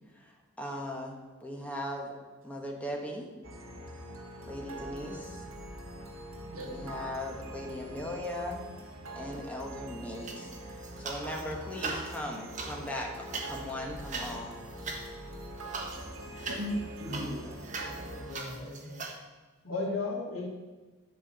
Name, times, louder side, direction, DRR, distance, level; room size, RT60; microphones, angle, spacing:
voice 1, 0.1-2.1 2.4-3.3 4.5-5.4 6.7-8.6 9.1-10.5 11.0-14.6, left 1 dB, 5° left, 1.5 m, -38 dB
sound 1, 3.4-18.4, right 1 dB, 75° right, 1.7 m, -44 dB
voice 2, 6.5-6.9 15.9-18.2, equal, 90° right, 1.7 m, -39 dB
sound 2, 10.2-11.4 11.7-19.2, right 3 dB, 35° right, 1.3 m, -40 dB
voice 3, 18.0-19.1 19.6-20.5, left 3 dB, 75° left, 2.7 m, -36 dB
11.0 x 4.8 x 7.1 m
head